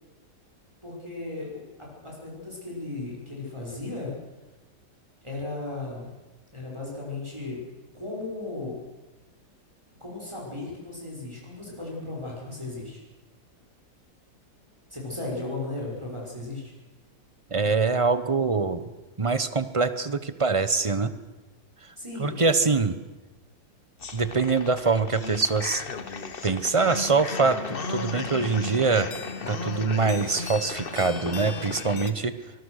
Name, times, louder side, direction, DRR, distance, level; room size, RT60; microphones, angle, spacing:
voice 1, 0.8-1.6 2.0-4.1 5.2-6.1 6.5-7.6 7.9-8.8 10.0-13.0 14.9-16.7 22.0-22.4, left 2 dB, 15° right, -3 dB, 6.0 m, -35 dB
voice 2, 17.5-18.9 19.2-21.1 21.8-21.9 22.2-23.0 24.1-25.8 26.4-29.1 29.5-32.3, right 4 dB, 30° right, 13 dB, 0.6 m, -24 dB
sound 1, 24.0-32.1, left 4 dB, 35° left, 1.2 m, -35 dB
24.5 x 21.0 x 6.5 m, 1.1 s
omnidirectional pair, 2.0 m